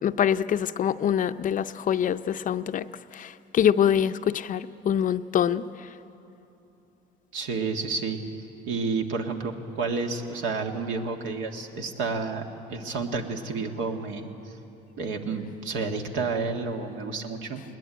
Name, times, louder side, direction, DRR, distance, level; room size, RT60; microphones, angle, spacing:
voice 1, 0.0-2.9 3.1-5.7, left 9 dB, 45° left, 0.5 m, -24 dB
voice 2, 7.3-8.2 8.7-12.4 12.7-14.3 15.0-17.6, right 4 dB, 75° right, 1.9 m, -30 dB
21.0 x 19.5 x 9.1 m
cardioid pair, 105°, 20 cm